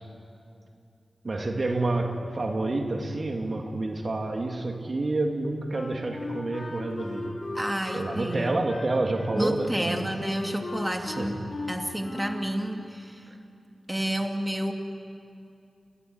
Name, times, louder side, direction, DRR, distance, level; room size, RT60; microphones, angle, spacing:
voice 1, 1.2-7.4 7.9-10.1 11.2-11.3, right 2 dB, 55° right, 3 dB, 2.6 m, -29 dB
Wind instrument woodwind instrument, 5.7-12.5, left 2 dB, 50° left, 5.7 m, -38 dB
voice 2, 7.5-8.6 9.4-11.4 11.7-13.3 13.9-14.7, right 1 dB, 15° right, 4 dB, 2.4 m, -30 dB
28.5 x 16.5 x 9.5 m, 2.5 s
cardioid pair, 40°, 0 cm